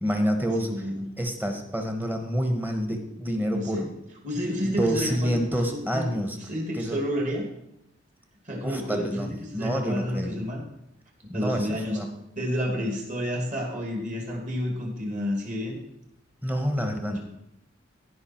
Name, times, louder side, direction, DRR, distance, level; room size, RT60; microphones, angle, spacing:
voice 1, 0.0-0.7 1.2-3.9 4.6-6.4 6.7-7.0 8.6-10.5 11.3-12.1 16.4-17.2, equal, 10° right, 5 dB, 1.1 m, -28 dB
voice 2, 0.6-1.1 3.5-3.9 4.2-7.5 8.5-10.6 11.3-12.0 12.4-15.8, equal, 40° right, 0 dB, 2.4 m, -30 dB
15.5 x 5.3 x 4.4 m, 0.83 s
head